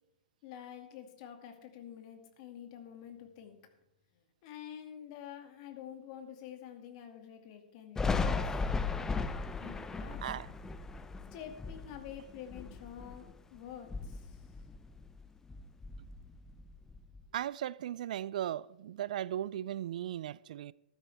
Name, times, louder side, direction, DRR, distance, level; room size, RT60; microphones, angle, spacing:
voice 1, 0.4-3.6 4.1-8.4 9.6-10.2 11.3-14.5, left 9 dB, 45° left, 2.3 m, -48 dB
Thunder, 8.0-13.4 13.8-15.2 15.5-17.2, left 4 dB, 10° left, 0.6 m, -36 dB
voice 2, 17.3-20.7, right 11 dB, 60° right, 0.4 m, -37 dB
14.0 x 12.0 x 3.5 m
hypercardioid pair, 120°, 5 cm